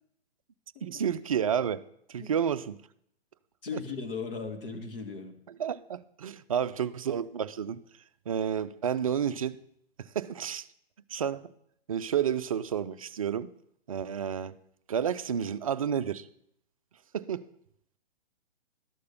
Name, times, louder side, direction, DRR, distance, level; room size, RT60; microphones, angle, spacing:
voice 1, 0.8-2.8 3.7-3.8 5.5-7.8 8.3-9.6 10.0-10.7 11.1-11.5 11.9-13.5 13.9-14.6 14.9-16.3 17.1-17.4, right 8 dB, 35° right, 0.4 m, -30 dB
voice 2, 3.6-5.4, left 5 dB, 60° left, 1.9 m, -37 dB
12.5 x 6.6 x 6.6 m
figure-of-eight pair, 125°, 31 cm